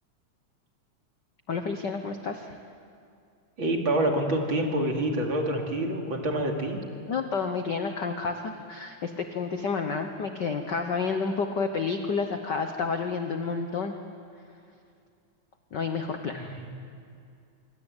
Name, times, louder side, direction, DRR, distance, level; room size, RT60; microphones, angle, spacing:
voice 1, 1.5-2.6 7.1-13.9 15.7-16.6, left 5 dB, 55° left, 6 dB, 1.2 m, -30 dB
voice 2, 3.6-6.8 16.3-16.6, right 1 dB, 40° right, 1 dB, 3.3 m, -27 dB
26.0 x 24.5 x 9.1 m, 2.4 s
omnidirectional pair, 3.4 m